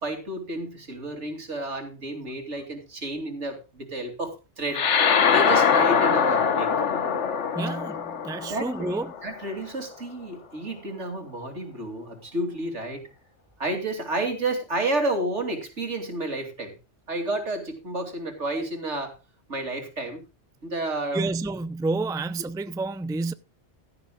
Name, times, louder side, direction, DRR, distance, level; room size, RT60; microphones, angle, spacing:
voice 1, 0.0-4.9 5.3-6.7 8.5-13.1 13.6-16.7 17.1-19.2 19.5-20.2 20.6-21.3, right 2 dB, 85° right, 3.1 m, -31 dB
sound 1, 4.7-9.5, left 6 dB, 85° left, 1.4 m, -23 dB
voice 2, 7.5-9.1 21.1-23.3, right 3 dB, 5° right, 0.3 m, -29 dB
16.0 x 12.5 x 2.3 m
omnidirectional pair, 1.2 m